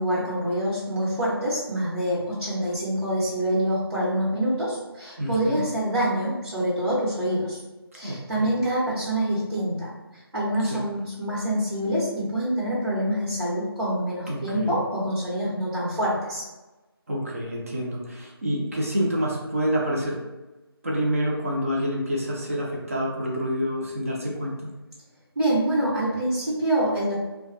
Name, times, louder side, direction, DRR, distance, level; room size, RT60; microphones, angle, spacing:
voice 1, 0.0-7.6 7.9-9.9 10.3-16.4 25.4-27.2, right 1 dB, 75° right, -8 dB, 1.0 m, -26 dB
voice 2, 5.2-5.6 8.0-8.5 10.6-10.8 14.3-14.7 17.1-20.2 20.8-24.5, equal, 35° right, -3 dB, 0.5 m, -27 dB
2.3 x 2.2 x 2.5 m, 1.1 s
figure-of-eight pair, 165°, 13 cm